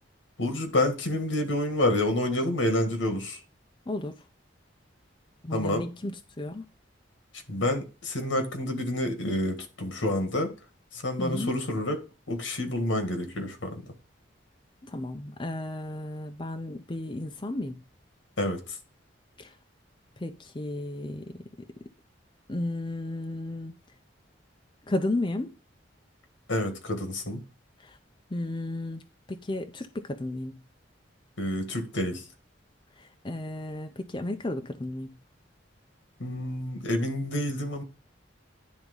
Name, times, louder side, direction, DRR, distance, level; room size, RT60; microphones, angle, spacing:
voice 1, 0.4-3.4 5.5-5.9 7.3-10.5 10.9-12.0 12.3-13.8 18.4-18.8 26.5-27.4 31.4-32.2 36.2-37.8, left 1 dB, 80° left, 1.8 m, -28 dB
voice 2, 3.9-4.2 5.4-6.6 11.2-11.5 14.8-17.8 19.4-19.5 20.2-21.2 22.5-23.7 24.9-25.5 27.8-28.0 28.3-29.0 29.3-30.5 33.0-35.1, left 1 dB, 25° left, 0.5 m, -33 dB
10.5 x 3.6 x 5.3 m
head